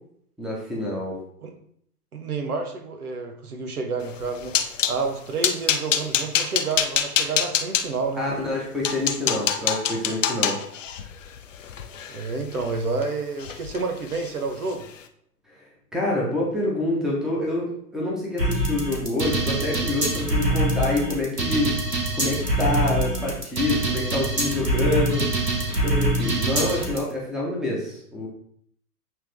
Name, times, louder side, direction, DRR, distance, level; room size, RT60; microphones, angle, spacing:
voice 1, 0.4-1.2 8.2-10.6 15.5-15.6 15.9-21.7 22.1-25.3 25.8-28.3, left 2 dB, ahead, -3 dB, 1.2 m, -27 dB
voice 2, 2.1-4.5 4.9-8.2 12.1-14.9, right 4 dB, 65° right, 4 dB, 1.2 m, -29 dB
sound 1, 4.1-5.0 5.4-7.9 8.5-8.6 8.8-13.0 13.4-13.8 14.1-14.3 14.7-14.9, left 8 dB, 50° left, 0.8 m, -25 dB
sound 2, 18.4-27.0, right 1 dB, 85° right, 1.9 m, -24 dB
8.6 x 3.7 x 3.5 m, 0.67 s
figure-of-eight pair, 115°, 47 cm